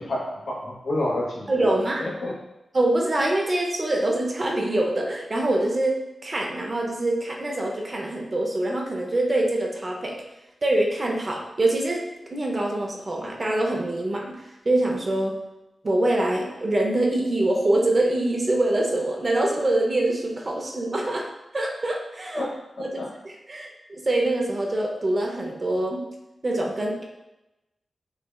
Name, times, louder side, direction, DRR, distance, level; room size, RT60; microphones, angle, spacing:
voice 1, 0.0-1.7 2.0-2.3 22.3-22.5 23.0-23.1, left 1 dB, 75° left, -4 dB, 1.0 m, -29 dB
voice 2, 1.5-2.0 2.7-10.2 10.6-15.4 15.8-21.3 21.5-22.5 22.8-22.9 23.2-26.0 26.4-27.0, right 1 dB, 40° right, 0 dB, 0.6 m, -24 dB
5.6 x 2.2 x 2.3 m, 0.96 s
wide cardioid pair, 95°, 0 cm